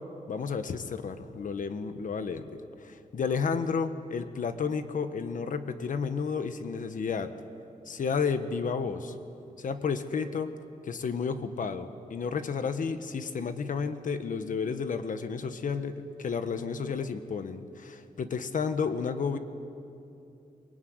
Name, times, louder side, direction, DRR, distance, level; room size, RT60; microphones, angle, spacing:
voice 1, 0.3-7.3 7.8-9.1 9.6-10.5 10.8-19.4, left 5 dB, 60° left, 9 dB, 1.4 m, -32 dB
23.5 x 21.5 x 9.7 m, 2.8 s
wide cardioid pair, 160°, 15 cm